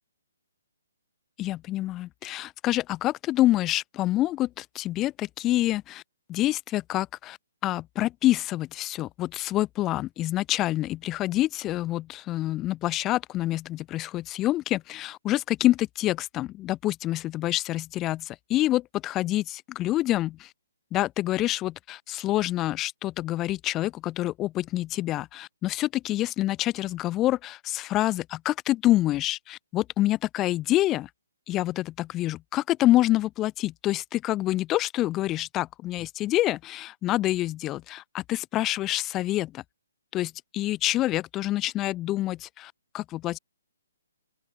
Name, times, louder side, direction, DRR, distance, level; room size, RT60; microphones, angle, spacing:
voice 1, 1.4-6.0 6.3-7.4 7.6-20.5 20.9-31.1 31.5-39.6 40.1-43.4, left 15 dB, 20° left, 4.6 m, -27 dB
open air
hypercardioid pair, 155°, 0 cm